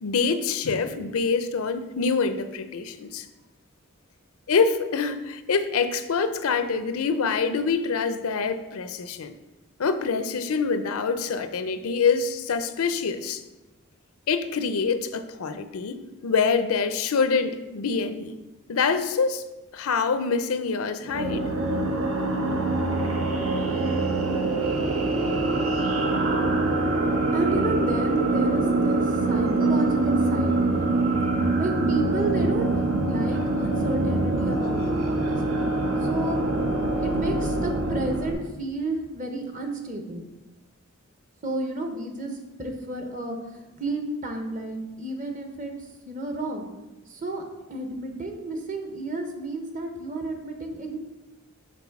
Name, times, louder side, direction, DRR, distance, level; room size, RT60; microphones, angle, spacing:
voice 1, 0.0-3.3 4.5-9.3 9.8-13.4 14.3-16.0 16.2-18.4 18.7-19.4 19.7-21.5, left 5 dB, 85° left, 10 dB, 0.5 m, -25 dB
sound 1, 21.0-38.3, right 2 dB, 80° right, 0.8 m, -24 dB
voice 2, 27.3-30.9 31.6-35.4 36.0-36.5 37.0-40.3 41.4-45.7 46.1-46.7 47.1-47.4 47.7-51.0, right 2 dB, 35° right, 4 dB, 0.8 m, -31 dB
6.0 x 3.8 x 5.9 m, 1.0 s
head